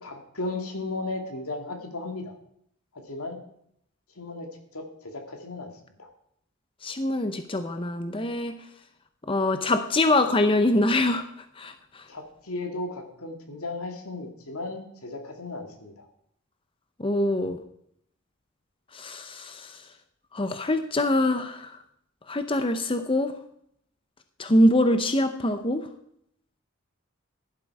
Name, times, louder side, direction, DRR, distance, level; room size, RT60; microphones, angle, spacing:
voice 1, 0.0-2.3 2.9-3.4 4.1-5.7 6.0-6.1 12.1-16.1, left 2 dB, 80° left, 4 dB, 2.4 m, -35 dB
voice 2, 6.8-8.5 9.3-11.2 11.6-11.7 17.0-17.6 18.9-19.8 20.3-21.7 22.3-23.3 24.4-25.8, left 1 dB, 25° left, 9 dB, 0.7 m, -24 dB
15.5 x 11.5 x 4.8 m, 0.71 s
head